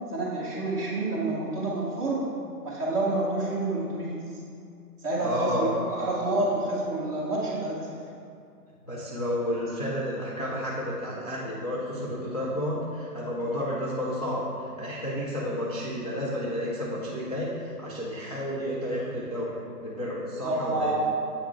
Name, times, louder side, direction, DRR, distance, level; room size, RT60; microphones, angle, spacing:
voice 1, 0.1-2.2 2.6-4.2 5.0-7.9 20.4-21.1, right 2 dB, 5° right, -9 dB, 0.6 m, -28 dB
voice 2, 5.2-5.7 8.9-19.5 19.8-20.9, equal, 30° left, -7 dB, 0.4 m, -31 dB
8.2 x 3.7 x 4.5 m, 2.4 s
hypercardioid pair, 145°, 48 cm